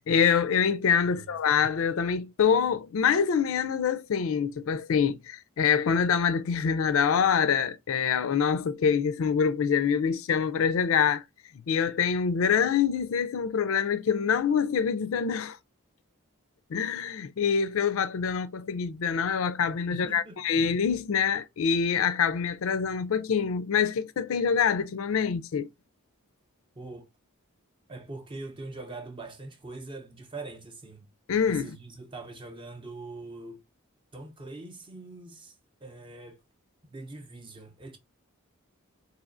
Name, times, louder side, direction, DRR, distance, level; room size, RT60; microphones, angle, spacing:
voice 1, 0.0-11.2 11.7-15.6 16.7-25.7 31.3-31.8, left 7 dB, 70° left, 0.4 m, -25 dB
voice 2, 1.1-1.6 19.9-20.6 26.8-27.1 27.9-31.1 31.4-33.6 34.1-35.6 35.8-36.4 36.8-38.0, right 2 dB, 20° right, 0.6 m, -43 dB
4.2 x 2.8 x 2.4 m
head